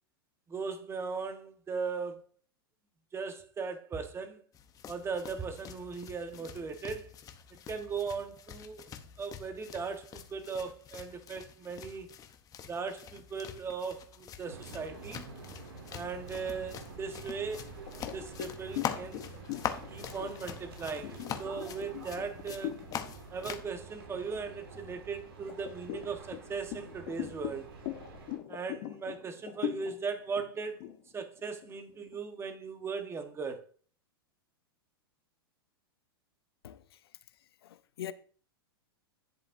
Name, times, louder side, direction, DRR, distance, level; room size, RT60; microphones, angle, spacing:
voice 1, 0.5-2.2 3.1-4.4 4.9-7.1 7.7-8.9 9.2-12.1 12.7-15.3 15.9-17.6 18.1-19.2 19.9-22.8 23.3-27.7 28.5-30.9 31.1-33.7, right 5 dB, 20° right, 1.3 m, -38 dB
sound 1, 4.5-23.7, left 9 dB, 30° left, 0.9 m, -44 dB
sound 2, 14.4-28.4, right 4 dB, 85° right, 3.1 m, -48 dB
sound 3, 17.9-23.0 23.4-23.7 24.1-24.9 25.5-32.2, left 14 dB, 50° left, 1.0 m, -41 dB
voice 2, 36.6-38.1, left 12 dB, 80° left, 0.7 m, -45 dB
10.5 x 7.7 x 2.7 m
hypercardioid pair, 115°, 13 cm